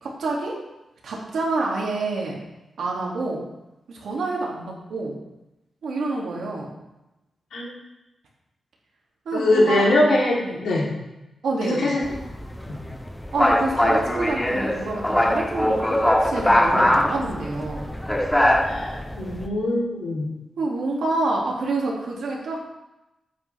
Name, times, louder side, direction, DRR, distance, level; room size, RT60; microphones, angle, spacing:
voice 1, 0.0-0.5 1.0-2.4 2.8-3.4 3.9-5.1 5.8-6.7 9.3-9.9 10.4-10.6 11.4-11.9 13.3-17.8 20.6-22.6, right 3 dB, 80° right, -3 dB, 2.3 m, -27 dB
voice 2, 9.3-10.9 11.6-12.0 12.6-12.8 18.6-20.3, left 1 dB, 85° left, -5 dB, 3.1 m, -22 dB
sound 1, 12.0-19.5, left 1 dB, 5° left, 0.6 m, -22 dB
9.3 x 8.4 x 3.4 m, 0.96 s
wide cardioid pair, 165°, 0 cm